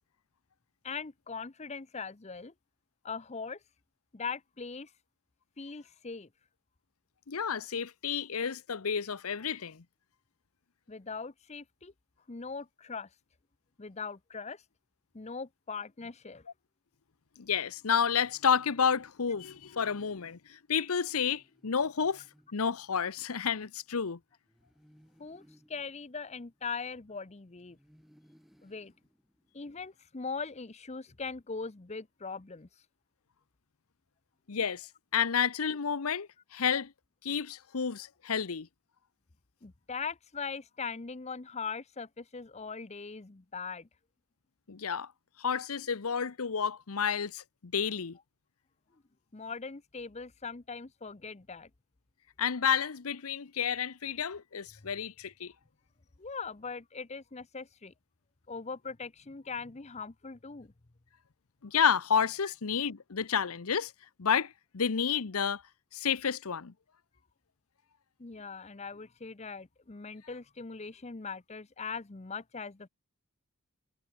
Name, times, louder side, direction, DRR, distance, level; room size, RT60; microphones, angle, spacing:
voice 1, 0.8-2.5 3.0-3.6 4.1-4.9 5.6-6.3 10.9-11.9 12.3-13.1 13.8-14.6 15.1-16.4 25.2-25.4 25.7-27.8 28.6-28.9 29.5-32.7 39.6-43.9 49.3-51.7 56.2-57.9 58.5-60.7 62.4-62.5 68.2-72.9, left 5 dB, 30° left, 0.7 m, -40 dB
voice 2, 7.3-9.8 17.4-22.2 22.5-24.2 34.5-36.9 37.2-38.7 44.7-45.1 45.4-48.2 52.4-55.5 61.6-63.9 64.2-65.6 65.9-66.7, left 7 dB, 80° left, 0.8 m, -30 dB
sound 1, 21.2-23.3 24.4-27.2 27.7-29.9, equal, ahead, 7.5 m, -65 dB
head